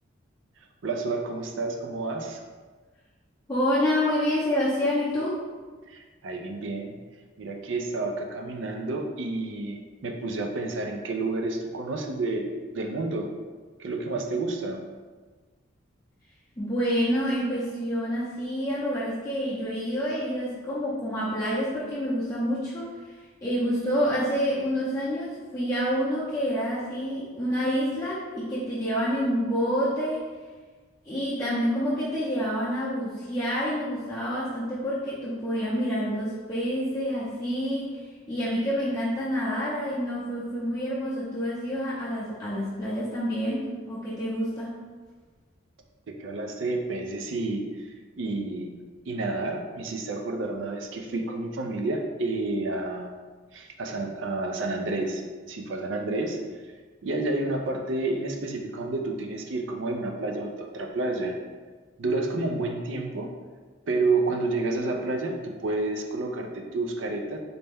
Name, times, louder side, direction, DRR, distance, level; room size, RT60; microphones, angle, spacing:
voice 1, 0.8-2.4 5.9-6.9 7.4-12.5 12.7-13.3 13.8-14.8 46.1-47.9 48.2-48.8 49.1-53.1 53.5-55.2 55.5-56.4 57.0-61.4 62.0-63.3 63.9-67.4, right 2 dB, 70° right, 3 dB, 0.4 m, -30 dB
voice 2, 3.5-5.4 16.6-22.9 23.4-30.3 31.0-37.9 38.3-44.8, equal, 15° left, -10 dB, 0.6 m, -28 dB
4.1 x 2.2 x 3.3 m, 1.4 s
head